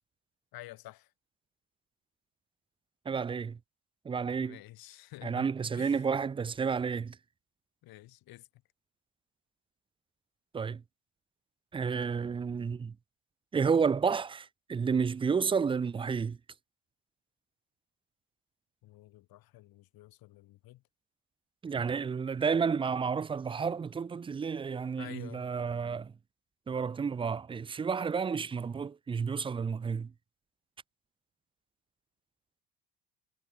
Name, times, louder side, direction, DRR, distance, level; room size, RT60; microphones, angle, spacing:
voice 1, 0.5-1.1 4.4-6.1 7.8-8.5 18.8-20.8 25.0-25.5, left 17 dB, 65° left, 3.7 m, -50 dB
voice 2, 3.1-3.6 4.0-4.6 5.2-7.2 10.5-10.8 11.7-12.9 13.5-16.4 21.6-26.1 26.7-30.1, right 6 dB, 15° right, 0.4 m, -31 dB
cardioid pair, 160°, 39 cm